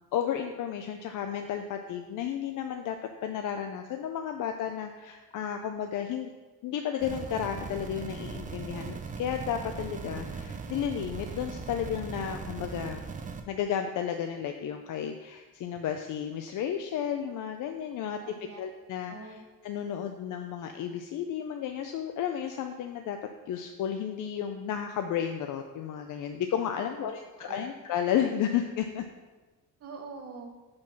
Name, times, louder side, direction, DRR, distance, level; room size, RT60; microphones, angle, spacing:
voice 1, 0.1-3.0 3.2-6.3 6.6-13.0 13.5-18.2 18.6-23.2 23.5-29.0, left 9 dB, 65° left, 5 dB, 0.5 m, -33 dB
sound 1, 7.0-13.4, right 5 dB, 25° right, 0.4 m, -39 dB
voice 2, 18.2-18.6 19.1-19.4 26.8-27.1 27.4-27.7 29.8-30.5, right 4 dB, 45° right, 2 dB, 1.0 m, -44 dB
5.5 x 5.2 x 5.9 m, 1.2 s
cardioid pair, 175°, 34 cm